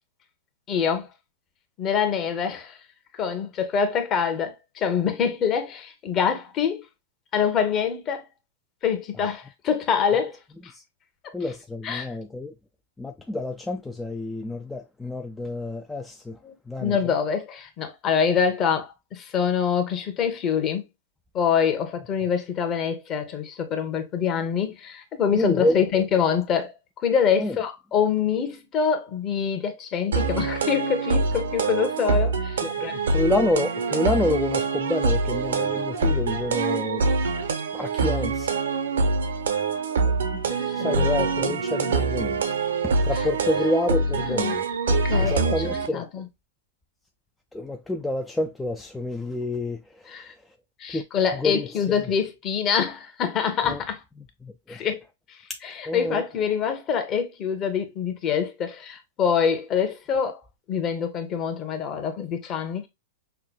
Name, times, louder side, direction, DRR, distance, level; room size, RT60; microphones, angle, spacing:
voice 1, 0.7-1.1 1.8-2.8 3.1-6.8 7.3-8.2 8.8-10.4 10.6-10.7 11.8-12.1 16.4-16.5 16.8-20.8 21.3-26.7 27.0-32.9 40.3-41.1 44.2-44.6 44.9-46.2 50.1-50.3 50.8-54.0 54.7-55.0 55.6-60.4 60.7-62.9, left 7 dB, 30° left, 0.9 m, -25 dB
voice 2, 11.3-12.5 13.0-16.4 16.7-17.1 25.3-25.9 27.4-27.6 32.6-37.0 37.7-38.5 40.7-42.4 42.8-44.6 45.2-46.1 47.5-50.5 50.9-51.0 51.3-52.1 53.6-53.8 54.4-54.8 55.9-56.2, left 2 dB, 5° left, 0.3 m, -28 dB
sound 1, 30.1-45.9, right 4 dB, 90° right, 0.9 m, -25 dB
5.7 x 2.2 x 2.3 m
hypercardioid pair, 140°, 0 cm